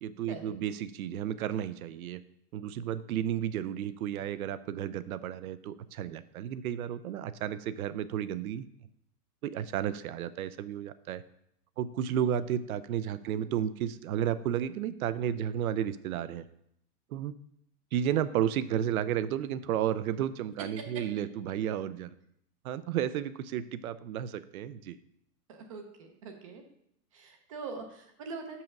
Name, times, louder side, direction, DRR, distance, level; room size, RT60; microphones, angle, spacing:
voice 1, 0.0-2.2 2.5-8.7 9.4-11.2 11.8-16.5 17.1-17.3 17.9-22.1 22.6-25.0, right 10 dB, 65° right, 15 dB, 0.6 m, -32 dB
voice 2, 25.5-26.6 27.1-28.6, right 4 dB, 25° right, 5 dB, 0.5 m, -43 dB
5.8 x 5.6 x 5.3 m, 0.74 s
supercardioid pair, 165°, 46 cm